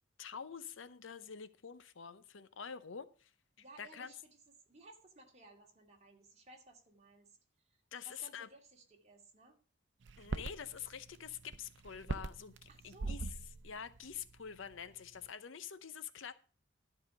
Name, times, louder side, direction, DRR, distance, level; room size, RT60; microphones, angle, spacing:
voice 1, 0.2-3.3 3.8-4.1 7.9-8.5 10.2-13.3 13.6-16.3, left 7 dB, 75° left, 0.7 m, -47 dB
voice 2, 3.6-4.4 4.7-7.3 7.6-9.6 12.7-13.2, right 2 dB, 35° right, 2.3 m, -59 dB
sound 1, 10.0-14.8 15.2-15.3, right 3 dB, 60° right, 0.7 m, -43 dB
12.0 x 5.0 x 6.9 m
head